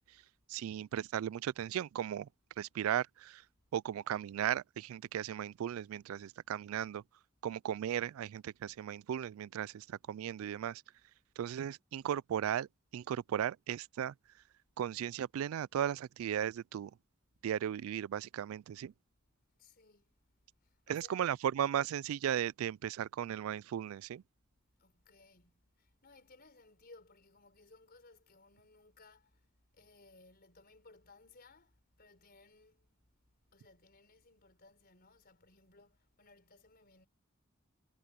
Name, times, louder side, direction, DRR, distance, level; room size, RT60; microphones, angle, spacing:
voice 1, 0.5-2.3 2.6-3.4 3.7-7.0 7.4-10.8 11.4-12.7 12.9-14.1 14.8-16.9 17.4-18.9 20.9-24.2, right 10 dB, 90° right, 0.3 m, -36 dB
voice 2, 19.6-20.2 20.6-21.4 24.8-29.5 29.7-32.9 33.5-37.1, left 3 dB, 50° left, 4.2 m, -61 dB
head